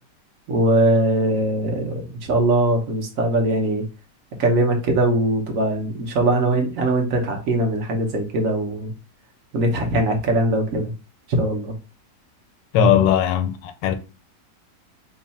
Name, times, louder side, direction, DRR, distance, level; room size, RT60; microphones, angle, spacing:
voice 1, 0.5-3.8 4.4-8.9 9.5-10.9 11.3-11.7 12.9-13.1, right 1 dB, 55° right, 1.2 m, -21 dB
voice 2, 12.7-13.9, left 8 dB, 85° left, 1.3 m, -18 dB
3.1 x 2.4 x 4.1 m
omnidirectional pair, 1.9 m